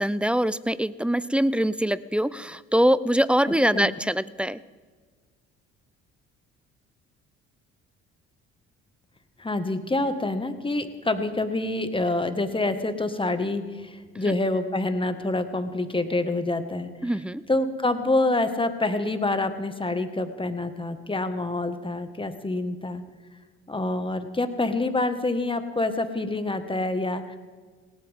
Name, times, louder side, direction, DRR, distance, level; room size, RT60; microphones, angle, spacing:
voice 1, 0.0-4.6 14.2-14.3 17.0-17.4, equal, 5° right, 18 dB, 0.5 m, -23 dB
voice 2, 9.4-16.9 17.5-23.0 23.7-27.4, left 2 dB, 15° left, 8 dB, 1.7 m, -27 dB
19.0 x 17.5 x 3.7 m, 1.5 s
hypercardioid pair, 55°, 34 cm